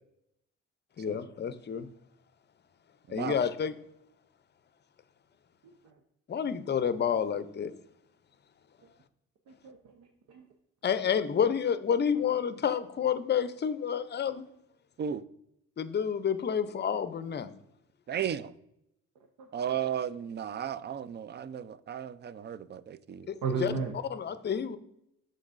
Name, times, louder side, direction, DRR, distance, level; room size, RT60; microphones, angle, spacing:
voice 1, 1.0-1.9 3.1-3.7 6.3-7.8 10.8-14.5 15.8-17.5 23.3-23.7 24.1-24.8, left 7 dB, 35° left, 0.5 m, -29 dB
voice 2, 9.5-10.5 19.4-19.5 23.4-24.0, right 4 dB, 85° right, 0.7 m, -35 dB
voice 3, 18.1-18.5 19.5-23.3, right 9 dB, 35° right, 0.4 m, -35 dB
11.5 x 3.9 x 2.5 m
cardioid pair, 90°, 30 cm